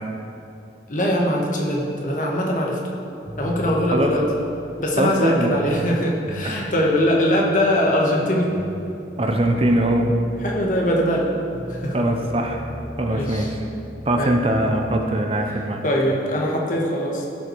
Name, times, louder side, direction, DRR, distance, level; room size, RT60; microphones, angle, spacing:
voice 1, 0.9-2.8 3.4-4.3 4.8-8.6 10.4-11.3 11.7-12.0 13.1-13.5 14.2-14.3 15.8-17.2, equal, 45° left, -2 dB, 1.4 m, -22 dB
sound 1, 3.2-5.9 6.2-8.3 8.5-12.0 12.2-14.9, equal, 15° right, 2.5 m, -37 dB
voice 2, 5.0-5.5 6.4-6.7 9.2-10.1 11.9-12.6 13.0-13.6 14.1-15.8, right 1 dB, 30° right, 3 dB, 0.7 m, -21 dB
15.5 x 5.7 x 4.6 m, 2.7 s
head